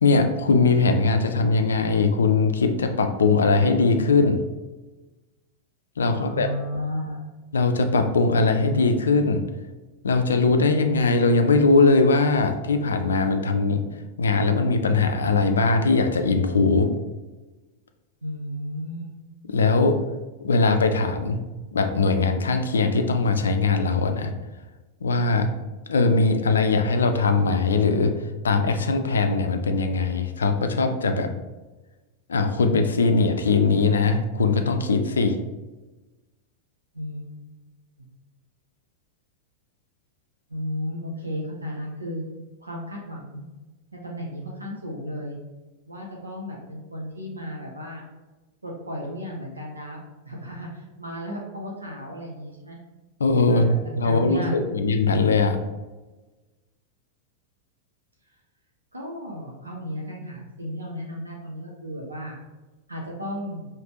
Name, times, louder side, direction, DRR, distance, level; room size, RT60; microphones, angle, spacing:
voice 1, 0.0-4.4 6.0-6.5 7.5-9.4 10.0-13.8 14.2-16.9 19.4-20.0 20.4-21.4 21.7-24.3 25.0-25.5 25.9-28.1 28.4-31.3 32.3-35.4 53.2-55.6, left 3 dB, 70° left, 7 dB, 0.4 m, -21 dB
voice 2, 6.0-7.2 18.2-19.1 36.9-37.4 40.5-42.2 42.6-43.5 44.0-45.4 45.9-48.0 48.6-52.8 53.4-53.7 54.0-54.7 58.9-62.4 62.9-63.7, equal, 80° right, -2 dB, 0.7 m, -34 dB
4.9 x 3.2 x 2.9 m, 1.2 s
figure-of-eight pair, 90°, 0 cm